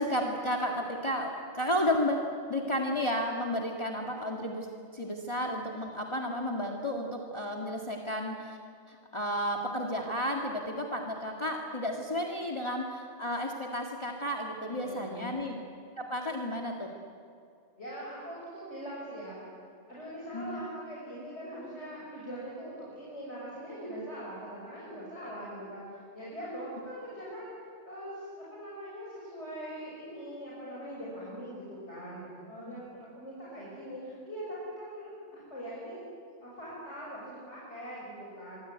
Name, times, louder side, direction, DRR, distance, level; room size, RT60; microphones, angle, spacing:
voice 1, 0.0-4.7 4.9-8.6 8.9-15.6 16.0-16.9 20.3-20.6 32.7-32.8, equal, 25° left, 0 dB, 2.0 m, -32 dB
voice 2, 14.6-15.4 17.8-19.4 19.9-36.0 36.4-38.6, equal, 70° left, -6 dB, 6.8 m, -42 dB
24.5 x 24.5 x 9.3 m, 2.4 s
omnidirectional pair, 1.2 m